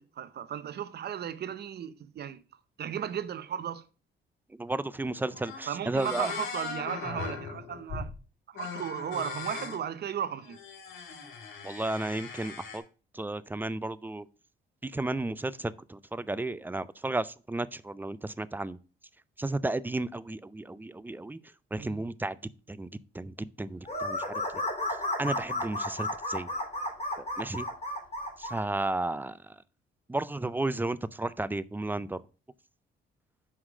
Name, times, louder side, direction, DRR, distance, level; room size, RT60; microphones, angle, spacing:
voice 1, 0.0-2.4 2.8-3.8 5.7-8.1 8.5-10.6 21.8-22.0, right 9 dB, 55° right, 0.7 m, -35 dB
voice 2, 4.6-6.3 11.6-12.8 13.1-14.3 14.8-18.8 19.4-21.4 21.7-24.4 25.2-26.5 27.4-27.7 28.4-29.4 30.1-32.2, right 2 dB, 10° right, 0.4 m, -33 dB
sound 1, 5.0-5.1 5.3-5.7 6.0-8.2 8.5-9.8 10.4-12.8, left 5 dB, 80° left, 1.9 m, -39 dB
sound 2, 23.9-28.6, left 1 dB, 30° left, 3.0 m, -33 dB
5.6 x 4.9 x 6.2 m
cardioid pair, 90°, 20 cm